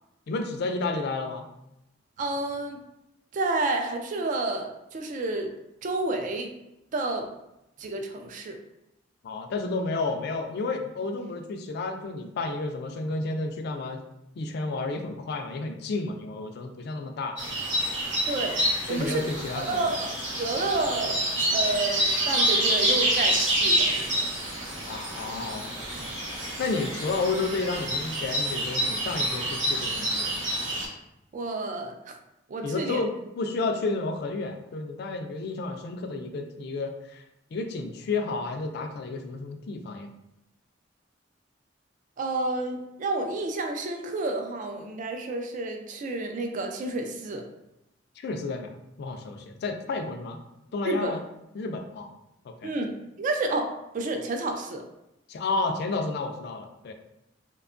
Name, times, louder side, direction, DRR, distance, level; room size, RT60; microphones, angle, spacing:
voice 1, 0.3-1.4 9.2-14.0 14.4-17.4 18.8-19.9 24.9-26.1 26.6-30.3 32.6-37.2 37.5-40.1 48.2-48.7 49.0-50.4 50.7-51.2 51.5-52.1 52.5-52.7 55.3-56.9, left 3 dB, 60° left, 6 dB, 0.3 m, -31 dB
voice 2, 2.2-2.8 3.3-5.5 5.8-6.5 6.9-7.3 7.8-8.6 18.3-18.6 18.9-19.2 19.6-20.1 20.4-21.3 21.5-24.3 31.3-31.9 32.5-33.0 42.2-47.4 50.8-51.1 52.6-54.8, right 2 dB, 45° right, 5 dB, 0.3 m, -30 dB
sound 1, 17.4-30.9, right 1 dB, 85° right, 1.0 m, -27 dB
2.7 x 2.2 x 2.4 m, 0.89 s
head